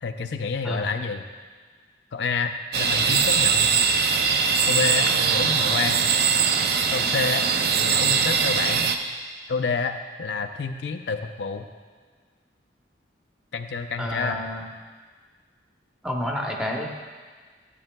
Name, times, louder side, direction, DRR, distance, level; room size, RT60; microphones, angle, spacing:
voice 1, 0.0-1.3 2.1-3.7 4.6-6.0 6.9-7.5 7.8-8.9 9.5-11.7 13.5-14.4, left 5 dB, 70° left, 6 dB, 0.5 m, -29 dB
sound 1, 2.7-9.0, right 6 dB, 55° right, 0.4 m, -21 dB
voice 2, 14.0-14.6 16.0-16.9, left 1 dB, 5° right, -1 dB, 0.8 m, -29 dB
13.5 x 8.5 x 2.2 m, 1.5 s
head